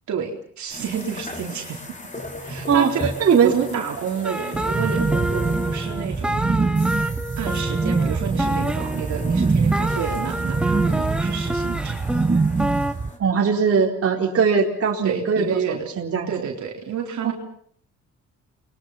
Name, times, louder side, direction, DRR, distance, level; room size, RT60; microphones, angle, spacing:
voice 1, 0.1-1.8 2.4-3.1 3.4-6.4 7.4-12.0 15.0-15.9 16.3-17.3, right 7 dB, 70° right, 1 dB, 4.1 m, -29 dB
sound 1, 0.7-13.2, left 1 dB, 25° left, 5.1 m, -38 dB
voice 2, 3.2-3.8 13.2-16.3 17.2-17.3, right 6 dB, 50° right, 1 dB, 4.4 m, -20 dB
sound 2, 4.2-12.9, right 1 dB, 5° right, 2.3 m, -28 dB
sound 3, 4.5-13.1, right 4 dB, 20° right, 1.2 m, -24 dB
30.0 x 22.5 x 5.9 m, 0.62 s
cardioid pair, 90°, 30 cm